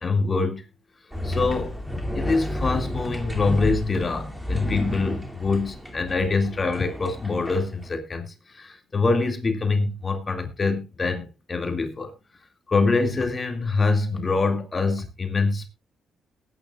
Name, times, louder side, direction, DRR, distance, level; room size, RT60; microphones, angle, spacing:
voice 1, 0.0-0.6 1.2-1.7 2.1-12.1 12.7-15.7, left 3 dB, 30° left, 2.2 m, -25 dB
sound 1, 1.1-7.9, left 1 dB, 5° right, 2.6 m, -31 dB
19.0 x 9.8 x 2.4 m
cardioid pair, 90°, 0 cm